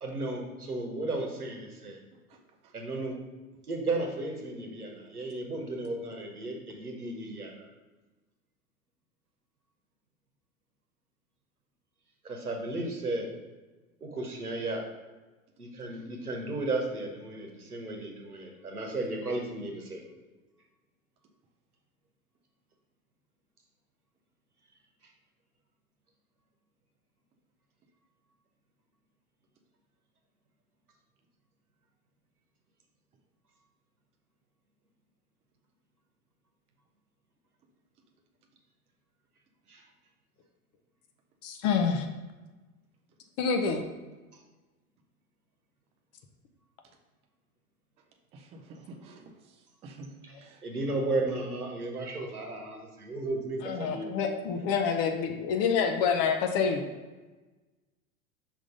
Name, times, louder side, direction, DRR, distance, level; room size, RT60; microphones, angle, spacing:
voice 1, 0.0-2.0 2.7-3.2 3.7-7.7 12.2-13.3 14.0-14.8 15.6-20.0 39.7-39.8 50.2-50.3 50.6-54.3, right 2 dB, 85° right, 1 dB, 1.1 m, -34 dB
voice 2, 2.3-2.7 48.3-50.1 50.4-50.6, right 2 dB, 15° right, 2 dB, 0.4 m, -49 dB
voice 3, 41.4-42.1 43.4-43.8 53.6-56.9, left 6 dB, 35° left, 5 dB, 0.7 m, -27 dB
5.4 x 3.7 x 4.9 m, 1.2 s
figure-of-eight pair, 85°, 44 cm